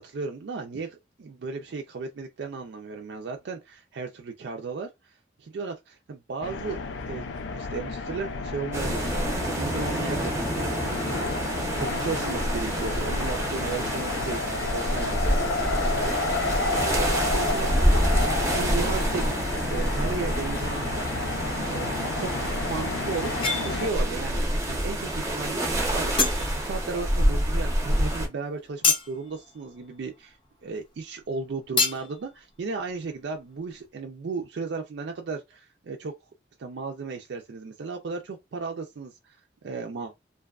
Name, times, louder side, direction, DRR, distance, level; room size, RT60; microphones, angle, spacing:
voice 1, 0.0-9.1 9.4-10.8 11.1-19.3 19.7-21.1 21.7-21.9 22.2-22.3 22.6-30.4 30.6-36.1 36.6-40.1, right 4 dB, 65° right, 0.4 m, -35 dB
sound 1, 6.4-23.9, left 3 dB, 75° left, 0.4 m, -31 dB
sound 2, 8.7-28.3, right 1 dB, 15° right, 0.6 m, -27 dB
sound 3, 23.4-24.1 24.5-25.0 25.4-25.5 25.9-26.9 27.2-31.0 31.2-31.3 31.8-32.2, left 4 dB, 25° left, 0.6 m, -29 dB
2.5 x 2.3 x 2.3 m
head